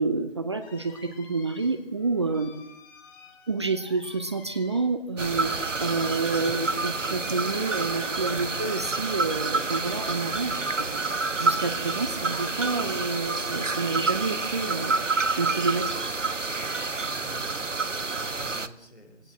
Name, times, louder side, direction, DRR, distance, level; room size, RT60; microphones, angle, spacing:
voice 1, 0.0-2.5 3.5-11.0 11.4-15.1 15.4-16.0, right 3 dB, 20° right, 10 dB, 0.8 m, -29 dB
sound 1, 0.6-17.3 17.6-18.8, left 5 dB, 15° left, 2.3 m, -51 dB
sound 2, 5.2-18.7, right 3 dB, 75° right, 1.4 m, -28 dB
voice 2, 17.9-19.3, right 1 dB, 60° left, 6 dB, 5.1 m, -47 dB
20.5 x 17.0 x 7.6 m, 0.82 s
figure-of-eight pair, 150°, 38 cm